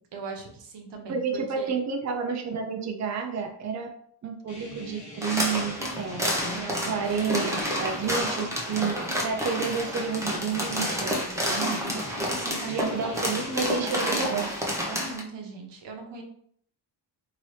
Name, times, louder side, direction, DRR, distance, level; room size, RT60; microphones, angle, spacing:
voice 1, 0.1-1.8 6.5-7.2 12.2-16.2, right 3 dB, 80° right, 2 dB, 0.8 m, -40 dB
voice 2, 1.1-3.9 4.2-6.6 6.9-12.1 12.7-14.5, right 5 dB, 40° right, 3 dB, 0.6 m, -30 dB
sound 1, 4.5-14.3, left 1 dB, 40° left, 1.1 m, -43 dB
sound 2, 5.2-15.2, equal, 5° right, 0.8 m, -29 dB
2.9 x 2.8 x 3.1 m, 0.64 s
cardioid pair, 75°, 42 cm